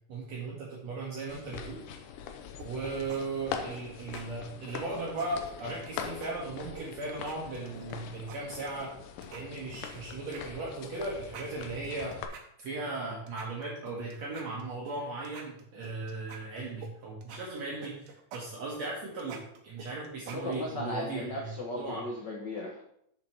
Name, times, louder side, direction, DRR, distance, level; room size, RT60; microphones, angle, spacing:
voice 1, 0.1-1.8 2.6-8.9 9.3-12.2 12.6-22.1, right 3 dB, 60° right, -5 dB, 2.5 m, -37 dB
sound 1, 1.3-12.3, left 7 dB, 85° left, 2.3 m, -43 dB
sound 2, 2.6-3.2 3.5-3.8 4.1-4.2 4.7-5.9 6.2-6.3 6.8-8.0 8.3-8.9 9.2-10.0 10.3-10.4 10.8-10.9 11.2-13.0 13.3-15.0 15.3-16.9 17.2-20.8, right 7 dB, 85° right, 2.6 m, -47 dB
voice 2, 20.3-22.8, left 1 dB, 55° left, -2 dB, 1.3 m, -36 dB
7.6 x 7.0 x 4.5 m, 0.72 s
omnidirectional pair, 3.6 m